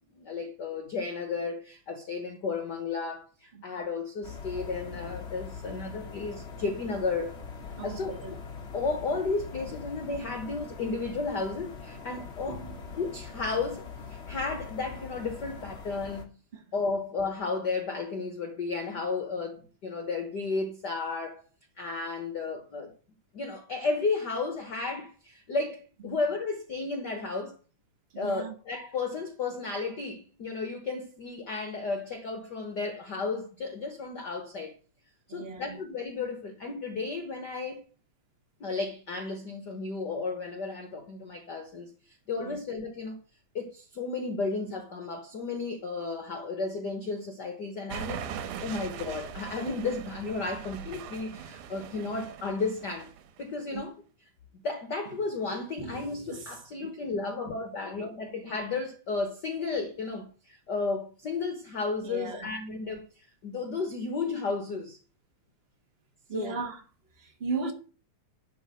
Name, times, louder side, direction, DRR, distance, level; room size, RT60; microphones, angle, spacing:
voice 1, 0.1-7.4 7.8-8.2 8.7-12.6 12.9-16.3 16.7-21.4 21.8-22.9 23.3-27.5 28.2-34.7 35.3-37.8 38.6-43.2 43.5-48.2 48.6-53.1 53.4-53.9 54.6-65.0 66.3-66.5, left 4 dB, 55° left, 1.2 m, -33 dB
sound 1, 4.2-16.2, left 5 dB, 80° left, 0.5 m, -42 dB
voice 2, 7.8-8.4 12.0-12.1 12.5-12.8 16.5-16.7 26.0-26.2 28.1-28.5 35.3-35.8 42.4-42.6 53.7-53.8 55.0-55.2 55.5-56.9 62.0-62.5 66.3-66.9 67.1-67.7, right 4 dB, 70° right, 0.5 m, -38 dB
sound 2, 47.9-53.4, right 8 dB, 85° right, 2.5 m, -40 dB
11.5 x 4.5 x 7.7 m
omnidirectional pair, 3.5 m